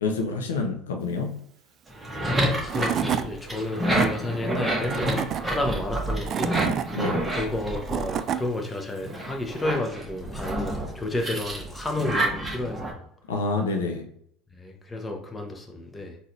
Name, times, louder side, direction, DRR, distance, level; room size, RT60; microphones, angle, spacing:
voice 1, 0.0-1.4 7.0-7.2 13.3-14.0, left 3 dB, 85° left, 4 dB, 0.5 m, -27 dB
sound 1, 1.9-8.6 9.0-12.9, right 1 dB, 10° right, 1.4 m, -29 dB
Tools / Wood, 2.3-2.4 2.7-3.3 3.7-4.1 4.8-5.4 6.0-6.9 7.6-8.4, right 9 dB, 45° right, 0.3 m, -28 dB
voice 2, 2.7-6.6 7.3-13.1 14.5-16.2, left 2 dB, 20° left, 2 dB, 1.0 m, -31 dB
4.0 x 2.7 x 3.2 m, 0.67 s
hypercardioid pair, 75°, 0 cm